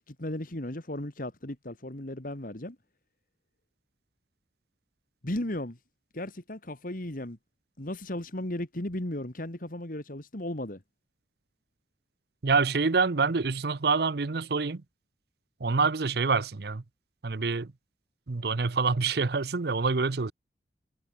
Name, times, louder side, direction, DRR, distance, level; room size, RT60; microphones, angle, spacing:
voice 1, 0.1-2.8 5.2-5.8 6.1-7.4 7.8-10.8, left 1 dB, 50° left, 2.2 m, -35 dB
voice 2, 12.4-14.8 15.6-16.8 17.2-17.7 18.3-20.3, right 4 dB, 65° right, 0.7 m, -26 dB
head